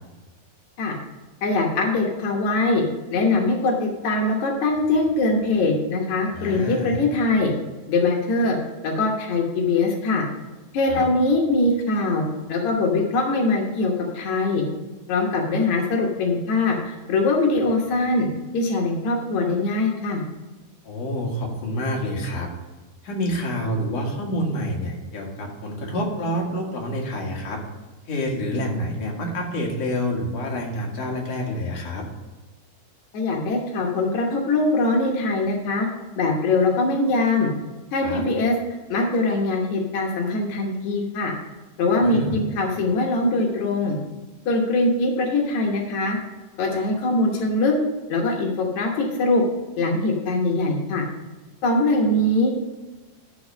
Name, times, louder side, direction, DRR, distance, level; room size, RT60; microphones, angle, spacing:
voice 1, 1.4-2.8 3.1-7.5 7.9-8.6 8.8-10.2 10.7-12.2 12.5-14.6 15.1-18.3 18.5-20.2 33.1-35.9 36.1-37.5 37.9-38.5 38.9-41.3 41.8-44.0 44.4-46.2 46.6-47.7 48.1-49.4 49.8-51.0 51.6-52.5, left 2 dB, 85° left, 0 dB, 1.6 m, -22 dB
voice 2, 6.3-7.0 10.9-11.0 20.8-22.5 23.0-27.6 28.1-32.0 38.0-38.2 42.0-42.4, equal, 50° left, -1 dB, 2.1 m, -28 dB
12.5 x 4.2 x 6.4 m, 1.2 s
omnidirectional pair, 5.2 m